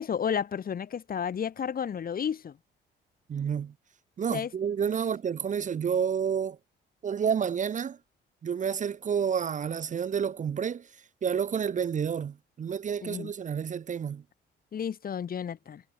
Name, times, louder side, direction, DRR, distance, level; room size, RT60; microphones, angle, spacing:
voice 1, 0.0-2.6 4.3-4.5 13.0-13.3 14.7-15.8, left 8 dB, 45° left, 1.4 m, -32 dB
voice 2, 3.3-3.7 4.2-6.6 7.0-8.0 8.4-10.9 11.2-14.2, right 7 dB, 40° right, 0.6 m, -29 dB
cardioid pair, 90°, 20 cm